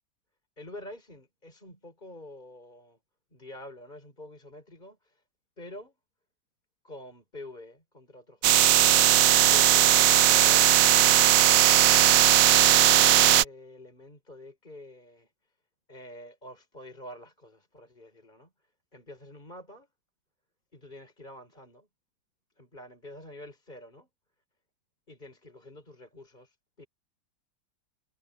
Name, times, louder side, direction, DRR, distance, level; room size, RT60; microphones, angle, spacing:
voice 1, 0.6-3.0 3.3-5.2 5.6-6.0 6.8-11.0 12.3-15.5 15.9-19.9 20.7-21.9 22.6-24.1 25.1-26.9, left 1 dB, 25° left, 5.0 m, -47 dB
sound 1, 8.4-13.4, right 11 dB, 65° right, 0.8 m, -18 dB
omnidirectional pair, 2.1 m